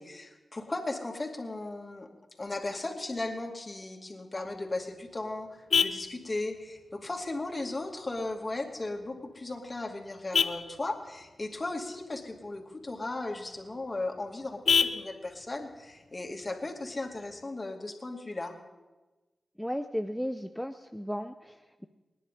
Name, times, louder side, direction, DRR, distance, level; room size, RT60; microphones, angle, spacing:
voice 1, 0.0-2.1 2.4-18.6, left 2 dB, 40° left, 2 dB, 2.4 m, -36 dB
Vehicle horn car horn honking, 4.4-17.4, left 5 dB, 70° left, 0.7 m, -35 dB
voice 2, 19.6-21.9, equal, ahead, 8 dB, 0.6 m, -35 dB
24.5 x 10.0 x 3.7 m, 1.2 s
cardioid pair, 45°, 0 cm